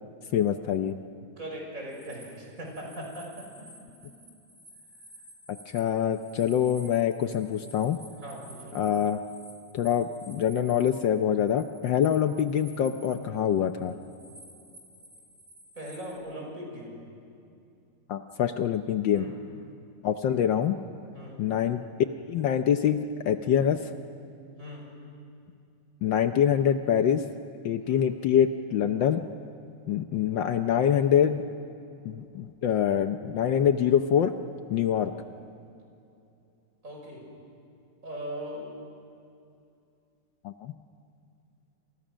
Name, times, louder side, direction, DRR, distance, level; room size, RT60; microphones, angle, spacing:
voice 1, 0.3-0.9 5.7-8.0 8.7-9.2 9.7-13.9 18.1-19.3 20.0-20.7 21.4-21.8 22.3-23.0 23.2-23.8 26.0-27.2 27.6-29.2 29.9-31.4 32.0-34.3 34.7-35.1 40.4-40.7, left 9 dB, 70° left, 8 dB, 1.4 m, -25 dB
voice 2, 1.4-4.1 8.2-8.8 15.8-17.0 19.1-19.3 21.1-21.4 24.6-24.9 27.9-28.0 36.8-37.2 38.0-38.7, equal, 40° right, -1 dB, 6.1 m, -40 dB
sound 1, 1.9-11.0 11.3-16.1, equal, 90° right, 6.8 m, -52 dB
28.5 x 27.0 x 6.3 m, 2.6 s
omnidirectional pair, 2.3 m